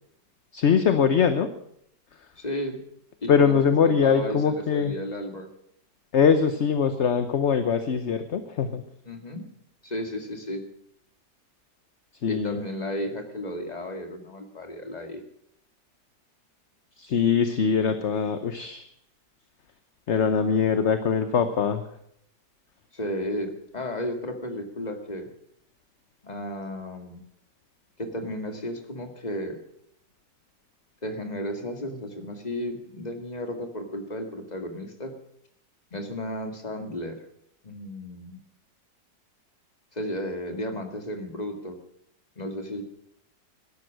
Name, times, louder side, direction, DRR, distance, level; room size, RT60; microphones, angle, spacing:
voice 1, 0.5-1.5 3.3-5.0 6.1-8.8 12.2-12.6 17.0-18.9 20.1-21.8, left 6 dB, 50° left, 9 dB, 1.0 m, -22 dB
voice 2, 2.4-2.8 3.2-3.5 3.8-5.5 9.1-9.5 9.8-10.7 12.3-15.2 22.9-25.3 26.2-27.2 28.0-29.6 31.0-35.1 35.9-37.2 37.6-38.4 39.9-41.8 42.4-42.8, left 1 dB, 25° left, 5 dB, 2.1 m, -33 dB
17.0 x 12.5 x 6.3 m, 0.71 s
omnidirectional pair, 1.9 m